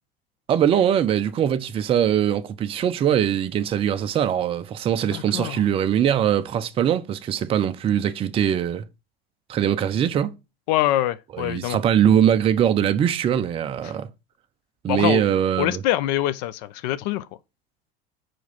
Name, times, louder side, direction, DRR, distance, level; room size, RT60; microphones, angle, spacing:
voice 1, 0.5-8.8 9.5-10.3 11.3-14.1 14.8-15.8, right 9 dB, 20° right, 0.4 m, -22 dB
voice 2, 5.1-5.6 10.7-11.8 13.8-13.9 14.9-15.2 15.6-17.3, left 14 dB, 45° left, 0.5 m, -24 dB
4.7 x 4.5 x 5.6 m
figure-of-eight pair, 75°, 30 cm